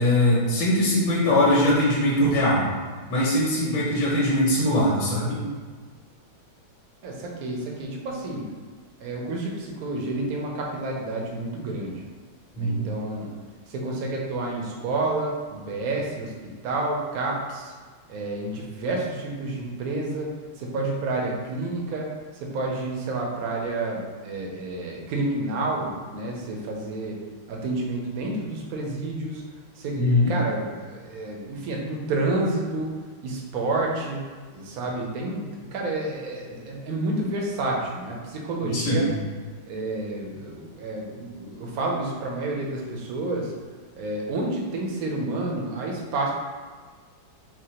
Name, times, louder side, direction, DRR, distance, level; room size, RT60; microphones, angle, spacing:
voice 1, 0.0-2.7 3.1-5.4 12.6-12.9 30.0-30.3 38.6-39.1, left 1 dB, 85° left, -6 dB, 1.8 m, -21 dB
voice 2, 3.6-4.0 7.0-8.5 9.0-12.0 12.6-13.3 13.7-17.7 18.1-22.1 22.4-27.2 27.5-29.4 29.8-32.9 33.2-39.1 39.7-43.5 44.0-46.3, right 2 dB, 65° right, -1 dB, 1.0 m, -29 dB
4.7 x 2.2 x 4.3 m, 1.5 s
omnidirectional pair, 2.2 m